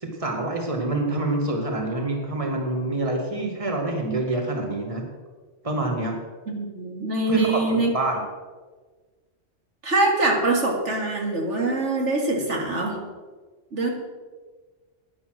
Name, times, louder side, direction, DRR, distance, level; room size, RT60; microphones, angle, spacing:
voice 1, 0.0-5.0 5.6-6.2 7.3-8.3, right 2 dB, 30° right, 2 dB, 1.9 m, -26 dB
voice 2, 6.5-7.9 9.8-13.0 13.7-13.9, right 2 dB, 75° right, 1 dB, 2.3 m, -24 dB
11.0 x 10.0 x 6.3 m, 1.4 s
omnidirectional pair, 1.2 m